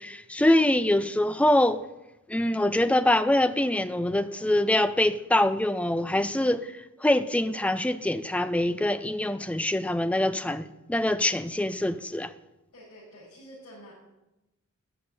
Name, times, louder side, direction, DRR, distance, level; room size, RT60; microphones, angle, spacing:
voice 1, 0.0-1.8 2.3-12.3, left 1 dB, 5° left, 0.4 m, -24 dB
voice 2, 12.7-13.9, equal, 80° left, 6.2 m, -48 dB
13.5 x 6.0 x 9.4 m
head